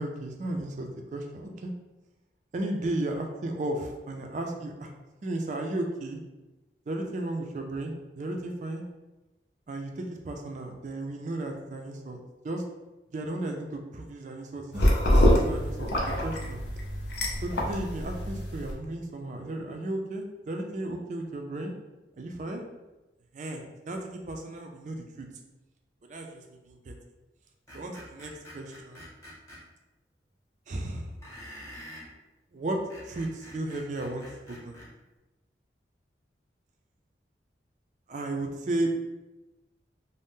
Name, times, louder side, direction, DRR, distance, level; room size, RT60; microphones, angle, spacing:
voice 1, 0.0-1.7 2.5-4.9 5.2-6.2 6.9-8.8 9.7-12.2 12.4-12.6 13.1-15.9 16.2-16.6 17.4-21.7 22.2-22.6 23.3-24.0 24.3-25.3 26.1-26.9 27.7-29.0 30.7-31.1 32.5-32.8 33.0-34.3 34.6-34.8 38.1-38.9, right 1 dB, 45° right, 3 dB, 0.3 m, -34 dB
sound 1, 14.7-18.7, left 1 dB, 75° left, 0.5 m, -25 dB
Screech, 27.7-29.6 31.2-32.1 32.7-34.9, equal, 15° left, 0.8 m, -46 dB
2.6 x 2.0 x 3.5 m, 1.1 s
head